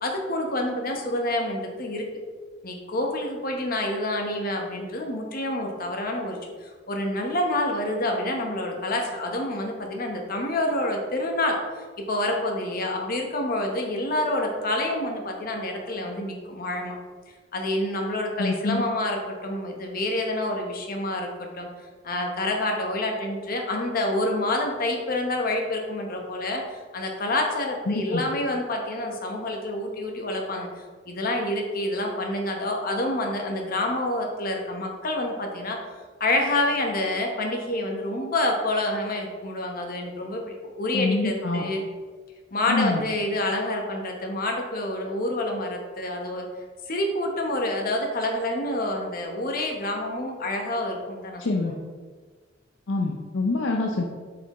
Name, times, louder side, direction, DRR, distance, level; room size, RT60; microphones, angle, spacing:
voice 1, 0.0-2.1 2.6-17.0 17.5-21.7 22.0-35.8 36.2-41.8 42.5-46.5 46.9-51.7, left 1 dB, 50° left, 2 dB, 1.0 m, -28 dB
voice 2, 18.4-18.8 27.9-28.2 40.9-41.6 42.7-43.0 51.4-51.7 52.9-54.0, left 2 dB, 70° left, 1 dB, 0.6 m, -25 dB
7.9 x 4.8 x 3.0 m, 1.5 s
head